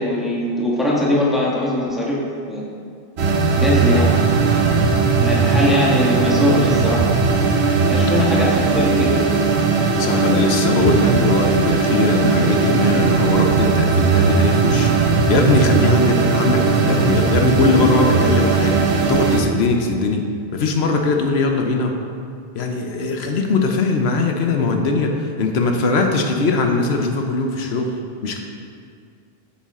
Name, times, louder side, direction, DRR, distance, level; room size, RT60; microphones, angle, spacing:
voice 1, 0.0-2.2 2.5-2.6 3.6-4.1 5.2-7.1 7.9-9.1, left 1 dB, ahead, -6 dB, 1.4 m, -21 dB
sound 1, 3.2-19.4, right 4 dB, 85° right, 1.1 m, -18 dB
voice 2, 9.9-21.9 22.6-28.4, left 3 dB, 80° left, 3 dB, 1.0 m, -20 dB
8.5 x 7.2 x 3.7 m, 2.3 s
omnidirectional pair, 1.1 m